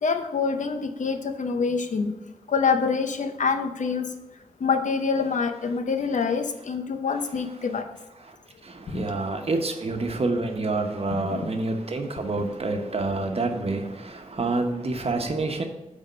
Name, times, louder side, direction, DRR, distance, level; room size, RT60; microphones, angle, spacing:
voice 1, 0.0-2.1 2.5-4.1 4.6-7.9 8.9-9.1 11.1-11.5, left 5 dB, 75° left, 7 dB, 0.7 m, -26 dB
voice 2, 8.6-15.6, right 3 dB, 50° right, 4 dB, 1.0 m, -27 dB
9.0 x 3.6 x 5.5 m, 0.96 s
wide cardioid pair, 70°, 13 cm